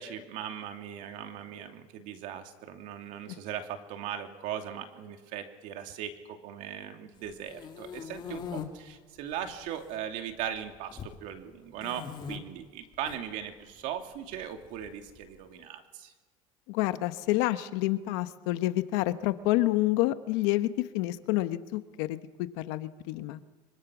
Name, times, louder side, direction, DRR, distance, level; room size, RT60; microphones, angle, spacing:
voice 1, 0.0-16.1, right 9 dB, 70° right, 5 dB, 2.6 m, -39 dB
sound 1, 7.2-8.6 9.3-9.9 10.2-11.2 11.8-12.4 12.9-13.2 14.3-15.2, left 7 dB, 35° left, 2.7 m, -41 dB
voice 2, 16.7-23.4, left 17 dB, 80° left, 11 dB, 1.2 m, -28 dB
25.0 x 24.0 x 6.2 m, 1.3 s
supercardioid pair, 120°, 14 cm